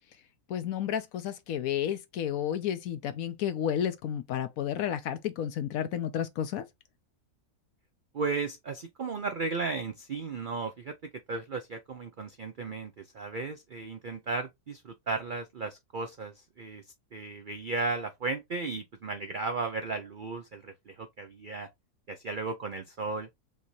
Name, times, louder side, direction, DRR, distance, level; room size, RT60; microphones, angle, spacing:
voice 1, 0.5-6.6, left 9 dB, 75° left, 1.0 m, -31 dB
voice 2, 8.1-10.9 11.3-16.8 17.1-21.7 22.1-23.3, right 3 dB, 80° right, 0.4 m, -35 dB
5.0 x 2.7 x 3.0 m
omnidirectional pair, 1.6 m